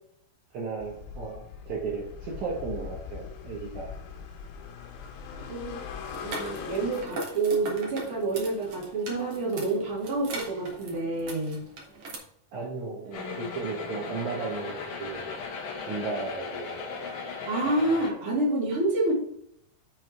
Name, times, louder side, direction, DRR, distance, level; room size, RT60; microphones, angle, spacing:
voice 1, 0.5-3.9 12.5-15.3 15.8-16.9, right 4 dB, 65° right, -5 dB, 1.9 m, -35 dB
sound 1, 0.8-7.1, left 6 dB, 85° left, 3.8 m, -40 dB
voice 2, 5.4-5.8 6.2-11.6 13.0-13.5 17.3-19.1, right 2 dB, 35° right, -3 dB, 2.6 m, -28 dB
sound 2, 6.0-12.1, right 2 dB, 85° right, 1.2 m, -40 dB
sound 3, 13.1-18.1, left 4 dB, 60° left, 2.4 m, -37 dB
7.9 x 5.9 x 4.5 m, 0.72 s
omnidirectional pair, 5.8 m